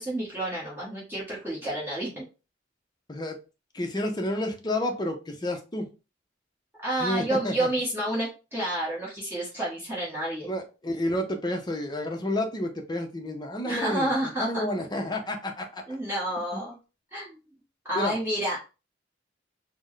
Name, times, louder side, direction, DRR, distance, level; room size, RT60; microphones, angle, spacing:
voice 1, 0.0-2.2 6.8-10.5 13.6-14.6 15.9-16.8 17.1-17.4 17.8-18.6, right 1 dB, 10° right, -7 dB, 1.1 m, -29 dB
voice 2, 3.7-5.9 7.0-7.7 10.5-15.8 17.9-18.2, left 1 dB, 20° left, 3 dB, 0.6 m, -30 dB
4.3 x 2.1 x 3.1 m, 0.30 s
head